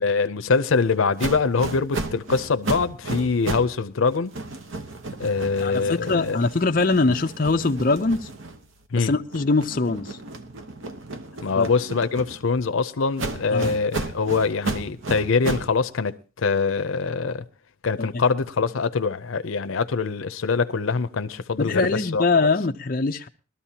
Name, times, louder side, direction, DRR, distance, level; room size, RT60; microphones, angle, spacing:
voice 1, 0.0-4.3 5.2-6.4 8.9-9.1 11.4-16.2 16.4-17.4 17.8-22.2, left 4 dB, 90° left, 0.6 m, -24 dB
sound 1, 1.2-3.8 4.1-8.9 9.3-12.6 13.2-15.8, right 3 dB, 80° right, 1.0 m, -33 dB
voice 2, 5.6-8.3 8.9-10.2 11.6-11.7 13.5-13.7 18.0-18.2 21.6-23.3, left 3 dB, 45° left, 0.6 m, -22 dB
20.5 x 13.0 x 2.9 m
head